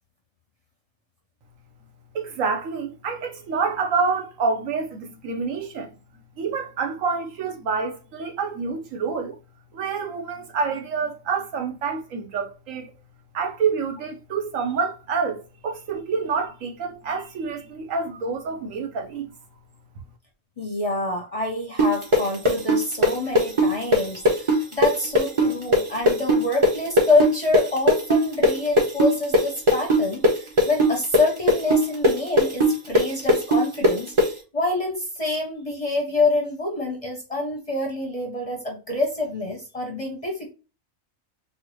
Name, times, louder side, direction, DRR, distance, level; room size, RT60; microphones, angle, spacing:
voice 1, 2.1-5.9 6.4-9.4 9.7-12.9 13.3-19.3, right 5 dB, 75° right, 1.2 m, -27 dB
voice 2, 20.6-40.5, left 2 dB, 35° left, 0.6 m, -26 dB
sound 1, 21.8-29.4 29.7-34.3, equal, 25° right, 0.9 m, -18 dB
4.4 x 2.2 x 3.0 m
omnidirectional pair, 1.4 m